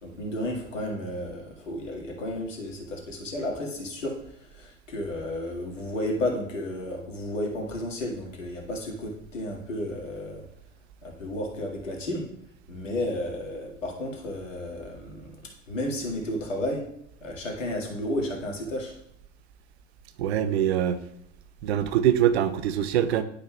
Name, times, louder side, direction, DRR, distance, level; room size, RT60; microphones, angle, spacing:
voice 1, 0.0-4.1 4.5-10.4 11.0-12.2 12.7-15.3 15.7-16.8 17.2-18.9, left 1 dB, 75° left, 2.0 m, -32 dB
voice 2, 20.2-21.0 21.6-23.2, right 10 dB, 55° right, 0.7 m, -23 dB
11.5 x 5.6 x 2.3 m
figure-of-eight pair, 80°, 38 cm